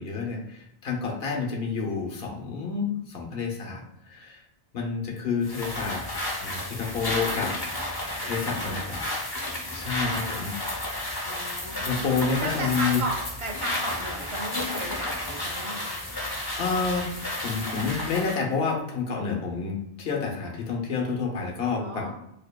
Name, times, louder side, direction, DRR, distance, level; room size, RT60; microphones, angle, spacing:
voice 1, 0.0-4.4 4.7-6.0 6.4-7.5 8.2-9.0 9.7-10.8 11.7-13.0 16.2-16.3 16.6-17.1 17.4-22.1, left 5 dB, 65° left, 1 dB, 1.0 m, -29 dB
sound 1, 5.4-18.4, left 1 dB, 25° left, 0.6 m, -32 dB
voice 2, 8.2-9.1 9.9-10.6 11.2-16.0 21.8-22.1, right 1 dB, 35° right, 1 dB, 0.6 m, -36 dB
4.5 x 2.7 x 2.2 m, 0.83 s
omnidirectional pair, 1.1 m